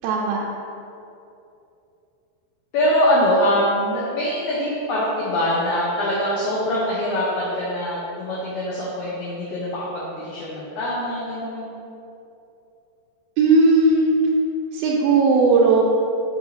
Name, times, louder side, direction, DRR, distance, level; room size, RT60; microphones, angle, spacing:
voice 1, 0.0-0.4 13.4-14.1 14.7-15.8, right 3 dB, 85° right, -4 dB, 2.4 m, -17 dB
voice 2, 2.7-11.7, equal, 75° left, -6 dB, 1.9 m, -23 dB
7.0 x 6.1 x 2.6 m, 2.7 s
omnidirectional pair, 4.1 m